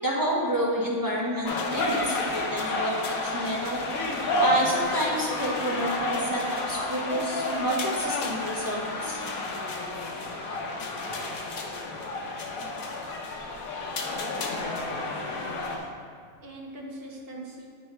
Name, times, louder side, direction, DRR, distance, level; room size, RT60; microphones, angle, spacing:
voice 1, 0.0-2.9 3.2-3.8 4.4-9.2, equal, 15° right, -6 dB, 1.0 m, -29 dB
sound 1, 1.4-15.8, left 2 dB, 70° left, 1.1 m, -30 dB
voice 2, 14.0-15.5 16.4-17.7, right 1 dB, 45° right, -2 dB, 1.1 m, -43 dB
9.1 x 3.1 x 4.5 m, 2.2 s
omnidirectional pair, 1.5 m